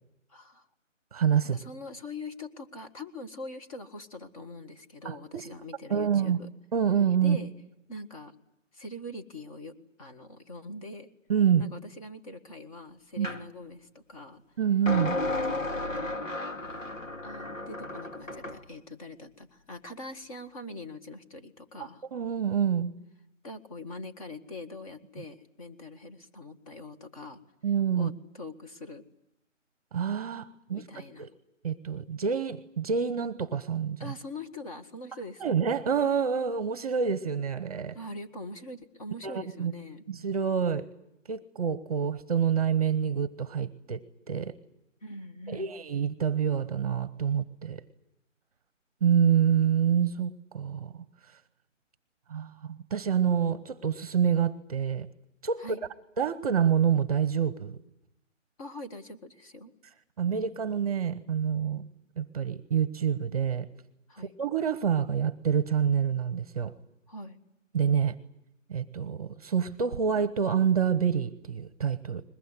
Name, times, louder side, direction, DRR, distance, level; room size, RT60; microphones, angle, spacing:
voice 1, 0.3-0.7 1.4-6.5 7.2-7.5 7.9-8.4 8.7-11.1 11.6-14.4 15.2-15.9 17.2-22.0 23.4-27.4 27.9-29.0 30.7-31.3 34.0-35.5 37.9-40.0 45.0-45.7 55.6-55.8 58.6-59.7 64.1-64.3 67.1-67.4, left 2 dB, 25° left, 7 dB, 1.7 m, -43 dB
voice 2, 1.1-1.6 5.0-5.5 5.9-6.4 6.7-7.4 11.3-11.6 13.2-13.3 14.6-15.2 22.1-22.9 27.6-28.1 29.9-30.9 31.2-31.3 31.6-34.1 35.4-38.0 39.2-39.7 40.1-40.9 41.3-44.5 45.5-47.8 49.0-50.9 52.3-55.1 55.4-55.8 56.2-57.8 60.2-61.9 62.2-63.7 64.4-66.7 67.7-68.1 68.7-72.2, right 7 dB, 30° right, 15 dB, 1.0 m, -27 dB
sound 1, 13.2-13.4 14.9-18.6, left 2 dB, 80° left, 2.4 m, -33 dB
22.0 x 21.0 x 9.9 m, 0.83 s
figure-of-eight pair, 155°, 38 cm